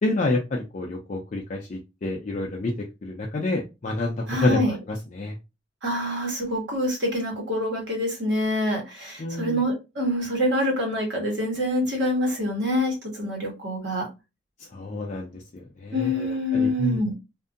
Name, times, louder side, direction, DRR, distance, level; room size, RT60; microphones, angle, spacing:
voice 1, 0.0-5.4 9.2-9.6 14.7-17.0, left 2 dB, 40° left, 0.4 m, -28 dB
voice 2, 4.3-4.7 5.8-14.1 15.9-17.1, left 1 dB, 65° right, 1.2 m, -26 dB
2.6 x 2.5 x 2.4 m
head